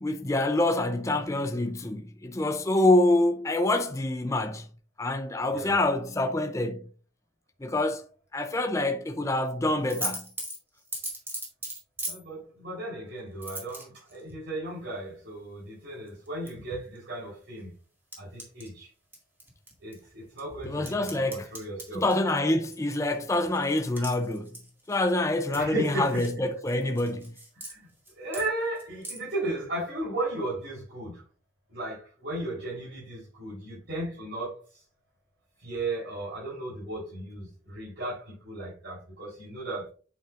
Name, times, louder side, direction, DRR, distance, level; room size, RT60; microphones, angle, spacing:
voice 1, 0.0-4.6 5.0-6.9 7.6-8.0 8.3-10.3 20.6-21.5 21.9-24.5 24.9-27.3, left 2 dB, 15° left, 0.5 m, -26 dB
sound 1, 9.8-12.2 13.4-14.2 16.1-16.5 16.9-17.0 18.1-18.7 19.1-20.0 20.4-25.2 25.5-26.4 26.7-27.7 28.0-28.5 28.8-29.2, right 1 dB, 10° right, 2.0 m, -38 dB
voice 2, 12.0-17.7 18.2-18.9 19.8-22.0 25.5-26.3 27.6-27.9 28.2-31.2 31.7-34.8 35.6-39.9, right 2 dB, 65° right, 3.8 m, -35 dB
8.4 x 5.9 x 2.5 m
head